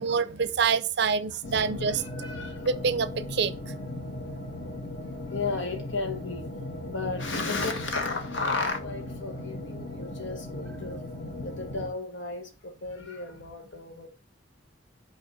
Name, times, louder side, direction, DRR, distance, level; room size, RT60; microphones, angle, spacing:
voice 1, 0.0-2.0 2.6-3.5, right 5 dB, 55° right, 0.5 m, -26 dB
voice 2, 1.3-2.7 5.3-6.5 6.8-11.0 11.4-14.1, left 3 dB, 70° left, 1.3 m, -34 dB
sound 1, 1.4-11.9, left 1 dB, 50° left, 1.9 m, -37 dB
5.4 x 4.2 x 5.5 m
head